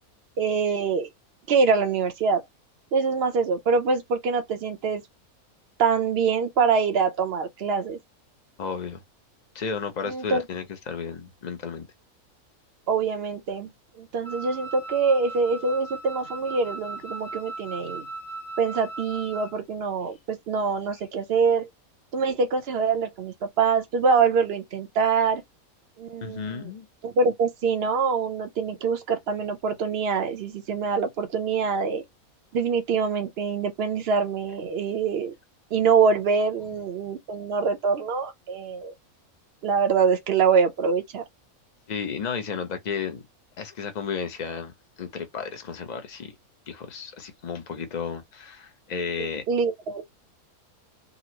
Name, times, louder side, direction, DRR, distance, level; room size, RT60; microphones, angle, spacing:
voice 1, 0.4-1.1 1.5-2.4 2.9-5.0 5.8-8.0 10.0-10.4 12.9-13.7 14.0-18.1 18.6-21.7 22.1-25.4 26.0-26.7 27.0-32.0 32.5-35.3 35.7-38.9 39.6-41.2 49.2-50.1, right 5 dB, 50° right, 0.9 m, -24 dB
voice 2, 8.6-9.0 9.5-11.9 26.2-26.9 41.9-43.2 43.6-46.3 46.7-49.4, left 6 dB, 40° left, 0.6 m, -33 dB
Wind instrument woodwind instrument, 14.2-19.6, right 2 dB, 65° left, 1.5 m, -38 dB
3.8 x 2.0 x 2.8 m
omnidirectional pair, 1.5 m